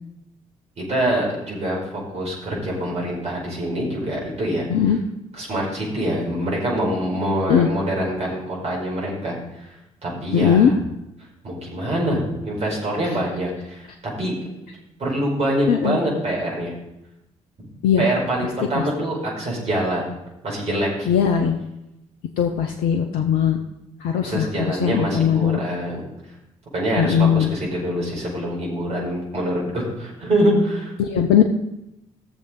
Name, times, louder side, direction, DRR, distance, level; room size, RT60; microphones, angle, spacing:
voice 1, 0.9-4.7 5.4-9.7 10.0-10.7 11.4-13.9 14.2-14.3 15.0-16.7 17.6-17.7 18.0-20.1 20.4-21.1 24.2-26.0 26.7-30.9, right 1 dB, 40° right, -4 dB, 5.0 m, -25 dB
voice 2, 10.3-10.7 13.0-13.2 15.7-16.0 17.8-18.0 18.7-18.8 21.1-21.6 22.4-23.6 24.0-25.6 27.0-27.5 31.0-31.4, left 8 dB, 60° left, 5 dB, 0.8 m, -19 dB
16.0 x 7.0 x 3.9 m, 0.87 s
figure-of-eight pair, 40°, 16 cm